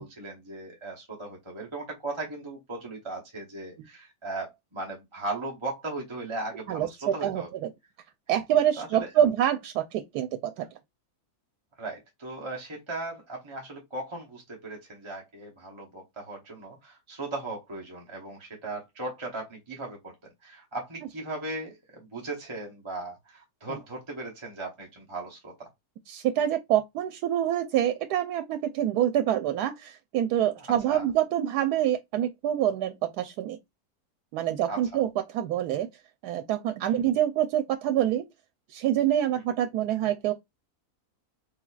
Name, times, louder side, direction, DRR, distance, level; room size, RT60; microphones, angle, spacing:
voice 1, 0.0-7.5 8.8-9.3 11.8-25.7 30.6-31.1 34.7-34.8 36.9-37.0, right 2 dB, 25° right, 0.8 m, -37 dB
voice 2, 6.7-7.7 8.3-10.7 23.7-23.8 26.1-33.6 34.3-35.9 36.2-38.2 38.7-40.3, right 11 dB, 90° right, 1.1 m, -26 dB
4.7 x 3.7 x 2.3 m
omnidirectional pair, 1.6 m